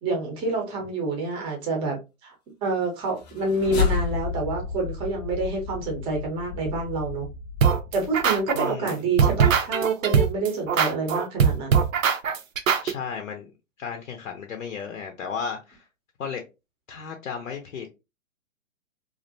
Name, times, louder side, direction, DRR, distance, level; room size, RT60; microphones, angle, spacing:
voice 1, 0.0-2.3 2.6-7.2 7.9-11.8, right 3 dB, 15° right, 0.6 m, -28 dB
sound 1, 3.1-8.4, left 5 dB, 35° left, 0.5 m, -31 dB
sound 2, 7.6-8.9 9.2-12.9, right 7 dB, 80° right, 0.6 m, -21 dB
voice 2, 8.5-9.0 12.8-13.5 13.8-15.8 16.2-16.4 16.9-17.9, left 6 dB, 75° left, 0.6 m, -34 dB
2.5 x 2.1 x 2.5 m
hypercardioid pair, 125°, 39 cm